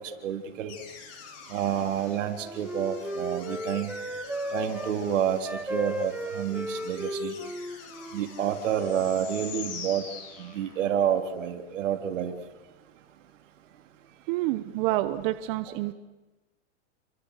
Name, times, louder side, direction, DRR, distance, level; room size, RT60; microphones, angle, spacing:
voice 1, 0.2-0.7 1.5-3.9 4.5-5.4 5.7-7.3 8.1-10.0 10.4-12.3, right 9 dB, 75° right, 3.6 m, -28 dB
sound 1, 0.7-11.0, left 6 dB, 40° left, 7.6 m, -46 dB
Wind instrument woodwind instrument, 1.8-5.0 5.4-8.6, equal, 5° right, 1.7 m, -35 dB
voice 2, 14.1-15.9, right 16 dB, 45° right, 1.2 m, -28 dB
30.0 x 24.0 x 6.6 m
supercardioid pair, 140°, 38 cm